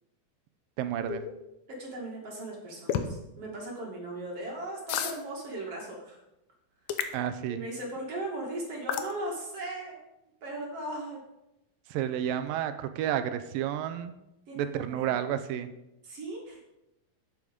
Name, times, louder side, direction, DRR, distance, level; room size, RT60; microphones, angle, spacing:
voice 1, 0.8-1.3 7.1-7.7 11.9-14.1 14.6-15.7, right 10 dB, 80° right, 10 dB, 2.2 m, -31 dB
sound 1, 1.1-1.3 2.9-3.1 4.9-5.2 6.9-7.2 8.9-9.1, left 9 dB, 85° left, 1.6 m, -30 dB
voice 2, 1.7-6.2 7.5-10.0 10.4-11.2 14.5-15.1 16.0-16.7, right 1 dB, 45° right, -2 dB, 2.6 m, -38 dB
8.5 x 8.3 x 5.2 m, 0.89 s
omnidirectional pair, 4.3 m